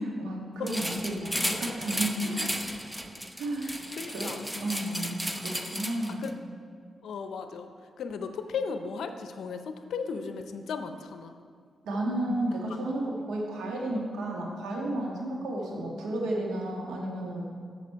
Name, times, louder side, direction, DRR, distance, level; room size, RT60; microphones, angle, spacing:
voice 1, 0.0-2.5 3.4-3.7 4.1-6.2 11.8-17.4, right 1 dB, 85° right, -1 dB, 1.4 m, -32 dB
sound 1, 0.7-6.3, equal, 5° right, 0.7 m, -34 dB
voice 2, 3.6-4.5 6.2-6.3 7.0-7.7 8.0-11.3, left 5 dB, 80° left, 8 dB, 0.6 m, -36 dB
7.3 x 6.9 x 4.6 m, 2.2 s
supercardioid pair, 55°, 0 cm